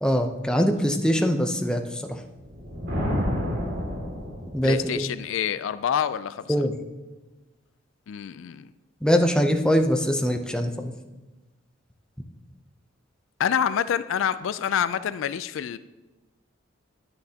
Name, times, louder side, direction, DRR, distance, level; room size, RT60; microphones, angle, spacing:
voice 1, 0.0-2.2 4.5-4.9 6.5-6.7 9.0-10.9, equal, 5° left, 4 dB, 0.6 m, -23 dB
Thunder, 2.4-4.8, equal, 60° right, 2.4 m, -29 dB
voice 2, 4.6-6.5 8.1-8.7 13.4-15.8, left 8 dB, 75° left, 14 dB, 0.3 m, -27 dB
10.5 x 9.7 x 2.8 m, 1.1 s
head